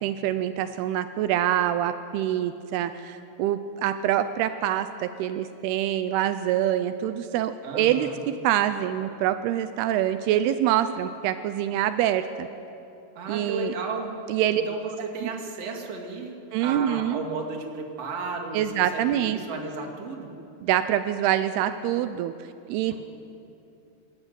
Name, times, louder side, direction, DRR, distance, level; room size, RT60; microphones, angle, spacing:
voice 1, 0.0-12.5 13.3-13.7 14.3-14.6 15.2-15.3 16.5-17.2 18.5-19.4 20.6-22.3 22.7-23.0, right 11 dB, 90° right, 10 dB, 2.3 m, -25 dB
voice 2, 7.6-8.2 13.1-14.2 14.5-16.3 16.6-20.3 22.9-23.0, right 3 dB, 40° right, 1 dB, 2.8 m, -34 dB
27.0 x 13.5 x 9.3 m, 2.7 s
omnidirectional pair, 5.3 m